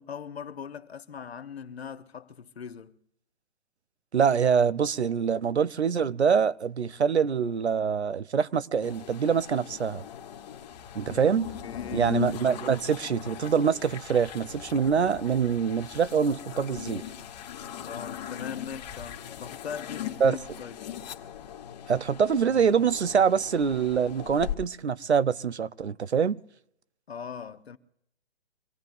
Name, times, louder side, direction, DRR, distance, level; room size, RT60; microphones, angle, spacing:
voice 1, 0.0-3.0 11.0-11.1 11.6-12.3 17.8-20.8 27.1-27.8, left 7 dB, 70° left, 1.1 m, -40 dB
voice 2, 4.1-10.0 10.9-11.5 11.9-17.0 20.2-20.4 21.9-26.4, right 6 dB, 85° right, 0.7 m, -25 dB
sound 1, 8.8-24.6, left 10 dB, 40° left, 1.4 m, -39 dB
25.0 x 17.5 x 2.7 m
figure-of-eight pair, 140°, 32 cm